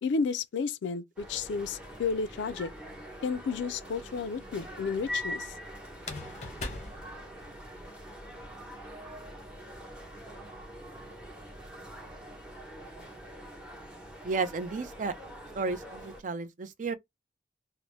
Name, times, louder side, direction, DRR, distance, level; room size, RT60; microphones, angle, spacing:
voice 1, 0.0-2.7 3.2-5.5, left 5 dB, 75° left, 0.3 m, -32 dB
sound 1, 1.2-16.2, equal, 5° right, 0.9 m, -44 dB
sound 2, 2.8-3.5 5.9-7.9, left 3 dB, 40° left, 0.6 m, -42 dB
voice 2, 14.2-15.2 15.5-16.9, right 4 dB, 45° right, 0.4 m, -32 dB
2.7 x 2.0 x 3.1 m
head